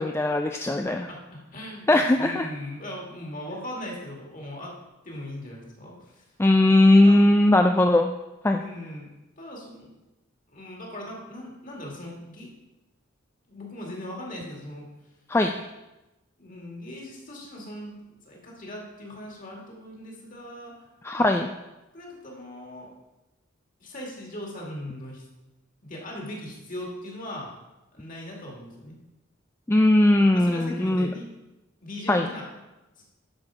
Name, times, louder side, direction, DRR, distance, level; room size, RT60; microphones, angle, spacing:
voice 1, 0.0-1.1 1.9-2.5 6.4-8.1 8.4-8.6 15.3-15.5 21.0-21.5 29.7-31.1 32.1-32.3, left 1 dB, 10° left, 4 dB, 0.3 m, -19 dB
voice 2, 0.9-4.8 5.0-6.2 7.0-7.2 8.6-9.1 9.4-9.9 10.5-12.5 13.5-14.9 16.4-20.9 21.9-22.9 23.8-25.2 25.8-27.5 27.9-29.0 30.3-31.3 31.8-32.6 33.0-33.1, left 1 dB, 40° left, -1 dB, 2.3 m, -39 dB
10.5 x 6.5 x 4.9 m, 1.0 s
head